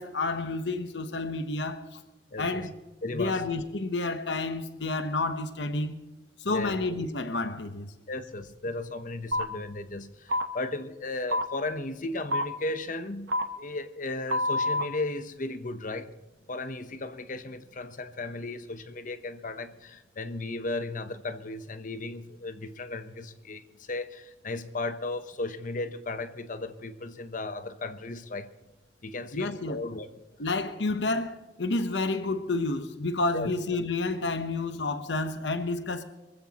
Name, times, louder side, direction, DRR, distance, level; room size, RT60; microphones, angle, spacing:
voice 1, 0.0-2.0 2.4-2.7 3.1-6.0 6.4-7.9 29.3-29.8 30.4-36.0, left 2 dB, 85° left, 1.0 m, -30 dB
voice 2, 2.3-2.7 3.0-3.5 6.5-6.8 8.1-16.1 16.5-28.5 29.0-30.1 33.3-33.5, left 2 dB, 45° left, 0.9 m, -35 dB
sound 1, 9.3-9.4 10.3-10.5 11.3-11.4 12.3-12.4 13.3-13.4 14.3-14.8, left 1 dB, 90° right, 1.1 m, -26 dB
24.0 x 15.0 x 3.0 m
head